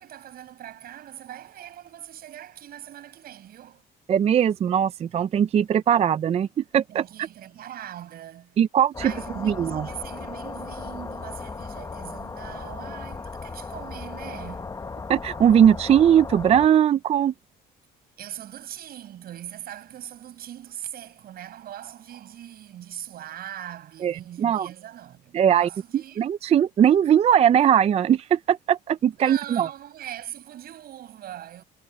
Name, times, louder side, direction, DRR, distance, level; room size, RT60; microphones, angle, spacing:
voice 1, 0.0-3.8 6.9-8.6 9.0-14.8 18.2-26.2 29.2-31.6, right 11 dB, 65° right, 7.1 m, -41 dB
voice 2, 4.1-7.3 8.6-8.9 9.4-9.9 15.1-17.3 24.0-24.7 25.3-25.7 26.2-29.7, right 9 dB, 40° right, 0.4 m, -20 dB
sound 1, 8.9-16.7, left 4 dB, 20° left, 1.0 m, -36 dB
cardioid pair, 110°, 17 cm